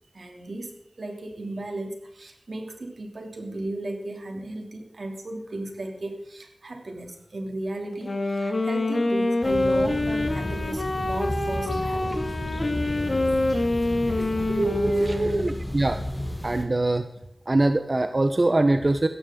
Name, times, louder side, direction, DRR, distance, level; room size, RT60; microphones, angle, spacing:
voice 1, 0.1-12.3 14.3-14.8, right 2 dB, 80° right, 3 dB, 2.8 m, -35 dB
Wind instrument woodwind instrument, 7.9-15.6, left 2 dB, 55° left, 2.1 m, -26 dB
sound 1, 9.4-16.6, left 1 dB, 15° left, 3.0 m, -32 dB
voice 2, 14.8-16.0 16.4-17.0 17.5-19.1, right 2 dB, 45° right, 8 dB, 0.9 m, -23 dB
16.5 x 14.0 x 3.8 m, 0.75 s
wide cardioid pair, 70°, 0 cm